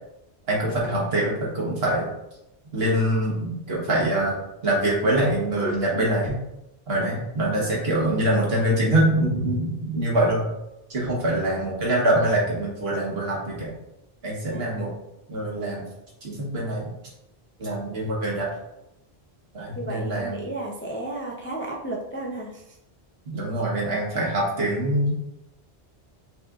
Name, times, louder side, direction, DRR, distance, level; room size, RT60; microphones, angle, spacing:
voice 1, 0.5-2.1 2.7-4.4 4.6-6.4 6.9-10.4 10.9-13.7 14.2-14.9 15.3-15.9 16.2-16.9 17.6-18.5 19.5-20.4 23.3-25.3, right 1 dB, 70° right, -4 dB, 1.4 m, -24 dB
voice 2, 14.5-14.8 19.8-22.6, right 1 dB, 20° left, -2 dB, 0.3 m, -33 dB
5.9 x 3.1 x 2.4 m, 0.89 s
omnidirectional pair, 1.1 m